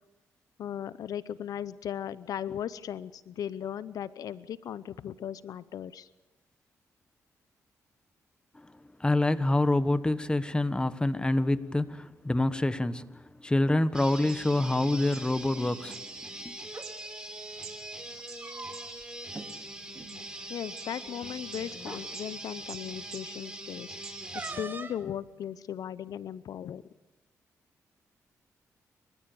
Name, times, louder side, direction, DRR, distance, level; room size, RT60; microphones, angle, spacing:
voice 1, 0.6-6.1 20.5-24.0 24.3-26.8, left 9 dB, 75° left, 0.6 m, -37 dB
voice 2, 9.0-16.0 16.4-16.6, left 2 dB, 15° left, 1.3 m, -26 dB
sound 1, 13.9-24.6, right 1 dB, 15° right, 4.6 m, -42 dB
sound 2, 13.9-17.8 18.3-19.7 20.1-22.3 22.6-22.8 23.1-24.6, right 8 dB, 75° right, 3.5 m, -51 dB
sound 3, 16.6-16.9 18.1-19.0 19.3-19.5 19.9-20.1 21.1-21.2 21.8-22.0 24.3-25.1, right 3 dB, 30° right, 2.2 m, -41 dB
30.0 x 14.5 x 6.9 m
cardioid pair, 70°, 6 cm